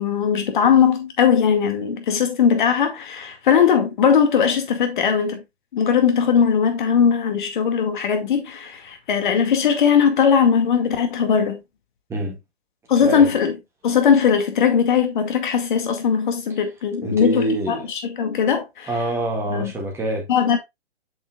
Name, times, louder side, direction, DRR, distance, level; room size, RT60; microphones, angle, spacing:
voice 1, 0.0-5.4 5.7-11.6 12.9-13.6 13.8-18.9 19.5-19.7 20.3-20.6, left 7 dB, 50° left, 2.2 m, -19 dB
voice 2, 13.0-13.3 17.0-17.9 18.9-20.3, right 1 dB, 10° right, 1.9 m, -25 dB
8.2 x 6.0 x 2.4 m
figure-of-eight pair, 135°, 32 cm